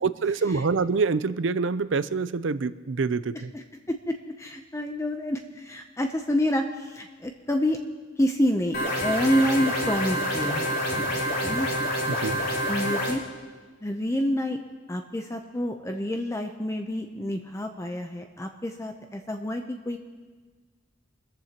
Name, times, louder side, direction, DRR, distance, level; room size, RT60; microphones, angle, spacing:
voice 1, 0.0-3.5 12.1-12.4, right 4 dB, 80° right, 15 dB, 0.5 m, -26 dB
voice 2, 3.3-7.8 8.2-8.8 9.0-11.7 12.7-13.2 13.8-14.6 14.9-20.0, left 1 dB, 15° left, 5 dB, 0.6 m, -28 dB
sound 1, 8.7-13.1, equal, 55° left, 3.5 m, -27 dB
25.5 x 14.0 x 2.9 m, 1.4 s
head